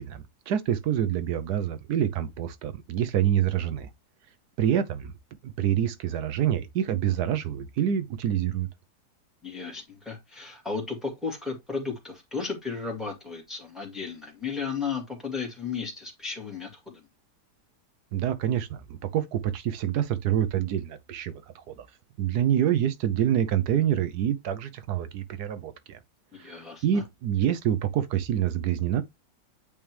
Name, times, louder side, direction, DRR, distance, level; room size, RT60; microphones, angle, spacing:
voice 1, 0.0-3.9 4.6-5.1 5.4-8.7 18.1-21.4 21.8-21.9 22.2-26.0 26.4-29.0, right 10 dB, 75° right, 1.2 m, -26 dB
voice 2, 9.4-17.0 26.3-27.0, left 5 dB, ahead, 2.1 m, -34 dB
8.6 x 3.5 x 3.2 m
omnidirectional pair, 1.8 m